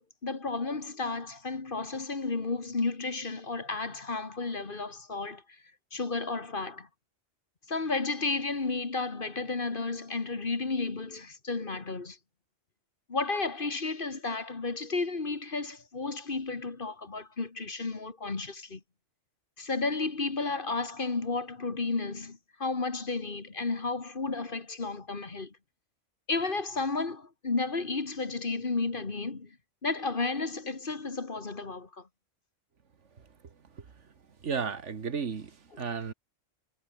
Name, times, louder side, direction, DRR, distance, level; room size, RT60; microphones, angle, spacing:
voice 1, 0.0-5.4 5.9-6.9 7.7-12.2 13.1-18.8 19.6-25.6 26.3-29.6 29.8-32.1 35.7-35.8, left 3 dB, 45° left, 2.0 m, -32 dB
voice 2, 33.2-34.1 34.4-36.1, right 6 dB, 70° right, 1.8 m, -35 dB
omnidirectional pair, 1.3 m